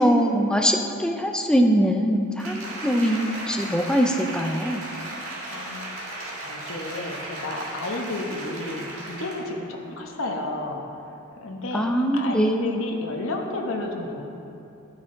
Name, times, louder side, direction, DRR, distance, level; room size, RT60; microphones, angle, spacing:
voice 1, 0.0-4.8 11.7-12.8, equal, 5° left, 3 dB, 0.4 m, -22 dB
Applause, 2.4-9.5 10.0-10.1, right 1 dB, 65° right, 1.9 m, -36 dB
voice 2, 5.3-14.3, left 2 dB, 65° left, 1 dB, 1.1 m, -32 dB
11.5 x 9.4 x 3.8 m, 2.7 s
head